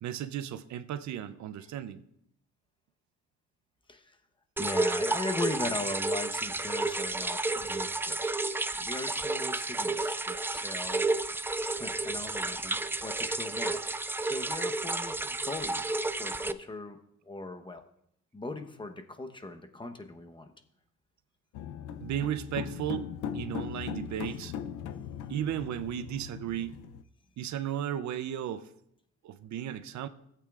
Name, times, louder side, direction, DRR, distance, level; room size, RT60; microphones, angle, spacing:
voice 1, 0.0-2.0 22.0-23.1 23.3-24.5 25.3-26.8 27.4-28.7 29.2-30.1, right 10 dB, 70° right, 12 dB, 0.6 m, -35 dB
voice 2, 4.6-8.2 8.8-11.1 11.4-11.5 11.8-15.8 16.2-17.0 17.2-17.8 18.3-20.5, left 2 dB, 15° left, 6 dB, 0.9 m, -39 dB
sound 1, 4.6-16.5, right 2 dB, 10° right, 0.3 m, -31 dB
sound 2, 21.5-27.0, left 9 dB, 80° left, 0.6 m, -39 dB
16.0 x 8.4 x 2.4 m, 0.74 s
cardioid pair, 90°, 30 cm